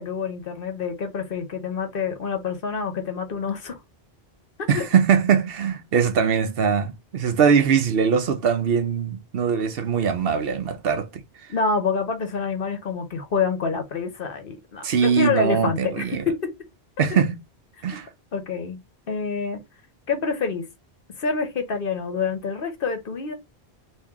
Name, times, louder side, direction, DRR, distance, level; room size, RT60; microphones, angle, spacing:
voice 1, 0.0-3.8 4.6-4.8 11.5-16.5 17.9-18.0 18.3-18.8 19.1-19.6 20.1-20.7 21.2-23.3, left 5 dB, 60° left, 1.0 m, -27 dB
voice 2, 4.7-11.2 14.8-16.2 17.0-17.4 17.8-18.1, right 6 dB, 65° right, 0.8 m, -21 dB
2.9 x 2.6 x 3.5 m
omnidirectional pair, 1.1 m